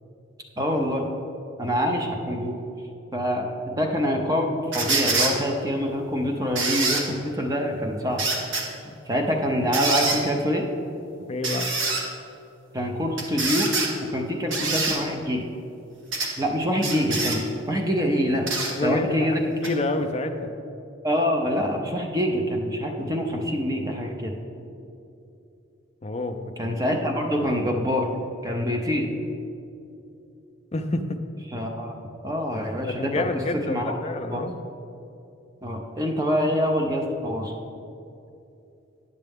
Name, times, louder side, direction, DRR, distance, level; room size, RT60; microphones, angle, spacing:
voice 1, 0.6-1.0 1.6-2.5 3.1-8.2 9.1-10.7 12.7-13.8 14.1-15.4 16.4-18.4 18.8-19.4 21.0-24.3 26.6-28.1 28.4-29.1 31.5-31.9 32.2-33.2 33.7-34.0 34.3-34.4 35.6-37.5, equal, 15° right, 2 dB, 0.6 m, -25 dB
sound 1, 4.7-5.3 6.6-7.0 8.2-8.6 9.7-10.2 11.4-12.0 13.2-13.9 14.5-15.0 16.1-16.3 16.8-17.4 18.5-18.7 19.6-19.7, right 3 dB, 65° right, 1.1 m, -25 dB
voice 2, 11.3-11.7 18.7-19.3 19.6-20.6 26.0-26.7 30.7-31.2 32.8-34.5, left 2 dB, 30° left, 5 dB, 0.4 m, -28 dB
9.7 x 6.6 x 3.6 m, 2.7 s
head